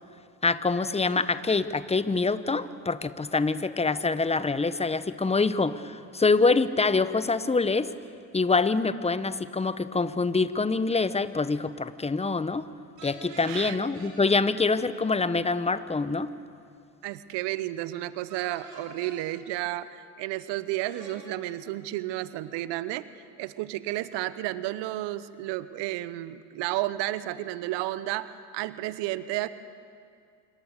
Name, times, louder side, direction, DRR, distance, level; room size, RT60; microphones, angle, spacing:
voice 1, 0.4-7.9 8.3-12.7 13.0-16.3, left 3 dB, 15° left, 14 dB, 1.1 m, -25 dB
sound 1, 13.0-14.1 18.3-19.2 20.8-21.2, right 3 dB, 85° right, 5.0 m, -46 dB
voice 2, 13.4-13.8 17.0-23.1 23.4-29.5, right 15 dB, 60° right, 15 dB, 1.1 m, -32 dB
26.5 x 24.0 x 6.7 m, 2.3 s
hypercardioid pair, 55°, 47 cm